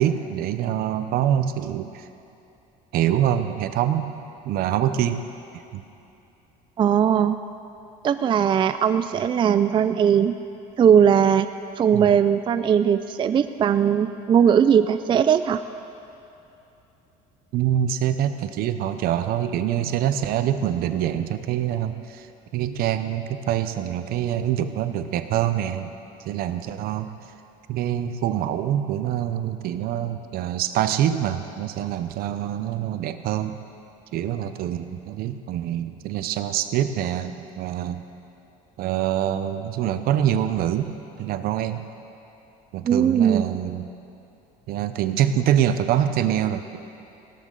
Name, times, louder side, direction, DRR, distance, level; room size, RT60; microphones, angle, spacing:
voice 1, 0.0-2.1 2.9-4.1 4.4-5.2 5.7-5.8 11.9-12.2 17.5-22.3 22.5-25.9 26.3-27.1 27.7-33.6 34.1-38.0 38.8-41.8 42.7-43.9 44.7-46.8, right 10 dB, 65° right, 10 dB, 0.7 m, -25 dB
voice 2, 6.8-7.4 8.0-10.4 10.8-11.5 11.8-15.6 42.8-43.4, right 8 dB, 30° right, 11 dB, 0.3 m, -19 dB
16.5 x 13.5 x 3.9 m, 2.8 s
cardioid pair, 110°, 16 cm